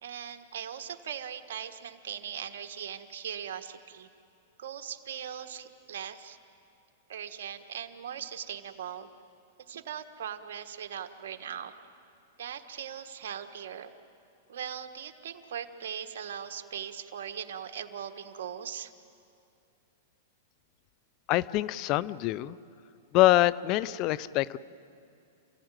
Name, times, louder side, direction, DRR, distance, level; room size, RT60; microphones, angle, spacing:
voice 1, 0.0-4.1 4.6-6.4 7.1-9.1 9.7-11.7 12.4-13.9 14.5-18.9, right 8 dB, 75° right, 6 dB, 1.3 m, -39 dB
voice 2, 21.3-22.6 23.1-24.6, left 16 dB, 40° left, 19 dB, 0.6 m, -25 dB
28.5 x 15.5 x 9.1 m, 2.6 s
hypercardioid pair, 135°, 0 cm